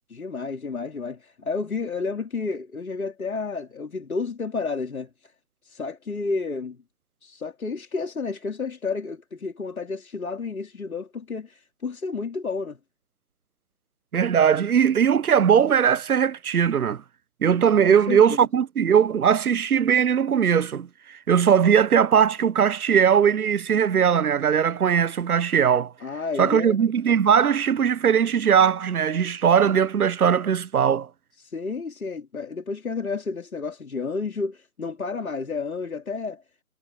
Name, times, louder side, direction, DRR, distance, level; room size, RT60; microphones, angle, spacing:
voice 1, 0.1-5.1 5.6-6.8 7.2-12.8 17.8-18.4 26.0-26.8 31.4-36.4, left 4 dB, 75° left, 3.9 m, -31 dB
voice 2, 14.1-17.0 17.4-20.9 21.3-25.9 26.4-31.1, right 8 dB, 90° right, 0.7 m, -20 dB
figure-of-eight pair, 145°, 43 cm